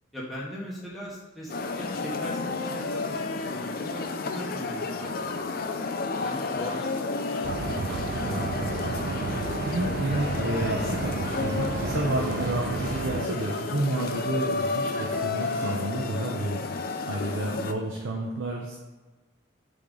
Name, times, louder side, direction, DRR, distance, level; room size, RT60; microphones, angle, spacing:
voice 1, 0.1-5.6 6.2-9.0 17.5-18.0, equal, ahead, -7 dB, 0.9 m, -41 dB
sound 1, 1.5-17.7, left 3 dB, 45° left, 0.4 m, -31 dB
sound 2, 7.4-13.3, right 4 dB, 45° right, 0.3 m, -32 dB
sound 3, 9.6-16.2, right 3 dB, 20° right, 1.4 m, -49 dB
voice 2, 9.7-18.8, right 1 dB, 80° right, -1 dB, 0.8 m, -30 dB
6.9 x 3.5 x 3.8 m, 1.2 s
head